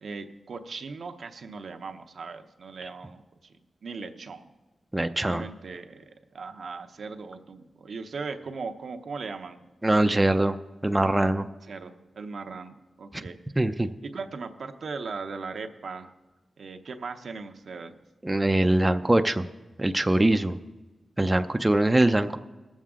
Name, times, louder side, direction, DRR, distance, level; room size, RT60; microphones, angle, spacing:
voice 1, 0.0-3.5 3.8-4.5 5.2-9.6 11.7-13.4 13.8-16.1 16.6-17.9, right 4 dB, 70° right, 6 dB, 0.8 m, -38 dB
voice 2, 4.9-5.4 9.8-10.6 10.8-11.5 13.1-13.2 13.6-13.9 18.2-19.5 19.8-20.6 21.2-22.4, right 1 dB, 20° right, 8 dB, 0.5 m, -22 dB
19.0 x 7.4 x 3.7 m, 1.2 s
cardioid pair, 70°, 0 cm